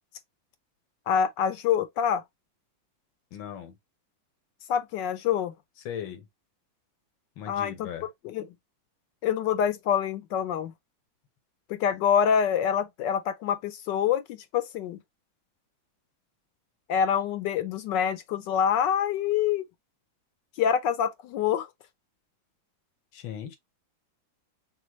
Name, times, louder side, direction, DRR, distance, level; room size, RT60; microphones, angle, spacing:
voice 1, 1.1-2.2 4.7-5.5 7.5-7.9 8.2-8.5 9.2-10.7 11.7-14.2 14.5-15.0 16.9-19.6 20.6-21.7, left 8 dB, 75° left, 1.2 m, -26 dB
voice 2, 3.3-3.8 5.9-6.2 7.4-8.1 23.1-23.6, left 9 dB, 90° left, 1.8 m, -38 dB
6.1 x 2.2 x 3.0 m
omnidirectional pair, 2.1 m